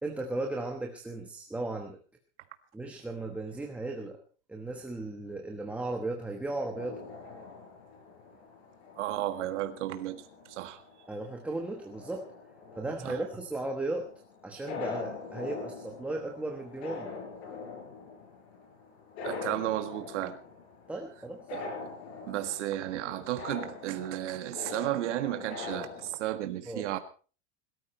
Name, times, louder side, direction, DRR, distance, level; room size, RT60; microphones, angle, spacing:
voice 1, 0.0-2.0 2.7-4.2 4.5-7.1 11.1-12.3 12.7-14.1 14.4-17.1 20.9-21.4 26.7-26.9, right 2 dB, 5° right, 1.1 m, -36 dB
sound 1, 6.8-26.1, left 4 dB, 60° left, 5.8 m, -43 dB
voice 2, 9.0-10.8 13.0-13.2 19.2-20.4 21.5-21.9 22.3-27.0, right 13 dB, 70° right, 1.7 m, -33 dB
22.0 x 14.0 x 4.3 m
supercardioid pair, 175°, 37 cm